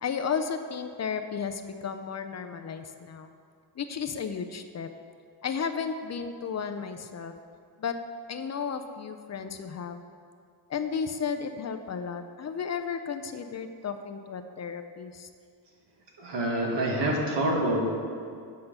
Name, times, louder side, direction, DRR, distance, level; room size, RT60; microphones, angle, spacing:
voice 1, 0.0-3.3 3.8-4.9 5.4-7.3 7.8-8.0 8.3-10.0 10.7-15.3, left 6 dB, 40° left, 8 dB, 0.4 m, -33 dB
voice 2, 16.2-17.8, right 1 dB, 65° right, -1 dB, 1.7 m, -26 dB
7.9 x 5.6 x 6.6 m, 2.2 s
wide cardioid pair, 160°, 46 cm